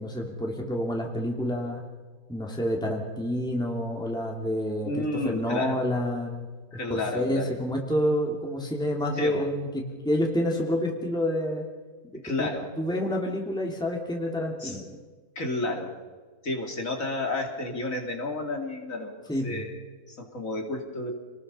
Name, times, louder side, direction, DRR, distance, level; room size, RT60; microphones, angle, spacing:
voice 1, 0.0-1.8 2.3-6.5 6.9-11.7 12.4-12.5 12.8-14.8 19.3-19.7, equal, 5° left, 0 dB, 2.7 m, -28 dB
voice 2, 4.8-5.8 6.7-7.5 9.2-9.4 12.1-12.7 14.6-14.8 15.3-15.9 16.4-19.8 20.1-21.1, left 2 dB, 60° left, 3 dB, 3.2 m, -31 dB
28.0 x 20.0 x 5.6 m, 1.4 s
omnidirectional pair, 1.6 m